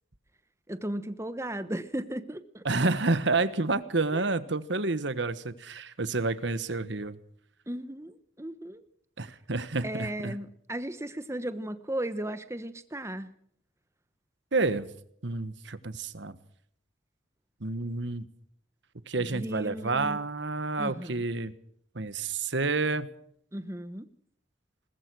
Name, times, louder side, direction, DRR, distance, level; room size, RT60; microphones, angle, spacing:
voice 1, 0.7-2.6 4.1-4.2 7.7-8.8 9.8-13.3 19.2-20.2 20.8-21.2 23.5-24.1, right 1 dB, 15° right, 12 dB, 1.1 m, -36 dB
voice 2, 2.6-7.2 9.2-10.4 14.5-14.9 15.2-16.3 17.6-18.2 19.1-21.5 21.9-23.1, right 3 dB, 70° right, 13 dB, 1.3 m, -29 dB
21.0 x 20.0 x 6.3 m, 0.68 s
head